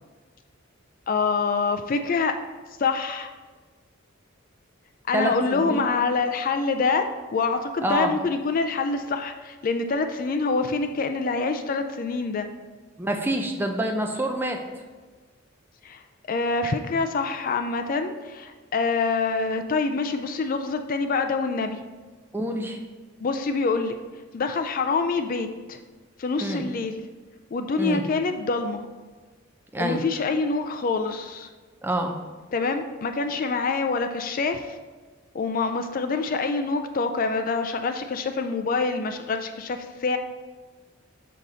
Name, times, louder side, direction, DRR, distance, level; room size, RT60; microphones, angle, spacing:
voice 1, 1.1-2.3 2.8-3.3 5.1-7.1 7.3-12.5 15.8-16.0 16.3-21.9 23.2-23.9 24.3-25.8 26.2-27.0 27.5-28.9 29.8-31.5 32.5-34.8 35.3-40.2, left 4 dB, 40° left, 7 dB, 0.4 m, -26 dB
voice 2, 5.1-6.0 7.8-8.1 13.0-14.6 22.3-22.8 26.4-26.6 27.8-28.0 29.7-30.0 31.8-32.1, right 1 dB, 10° right, 3 dB, 0.5 m, -27 dB
6.4 x 5.5 x 3.9 m, 1.4 s
head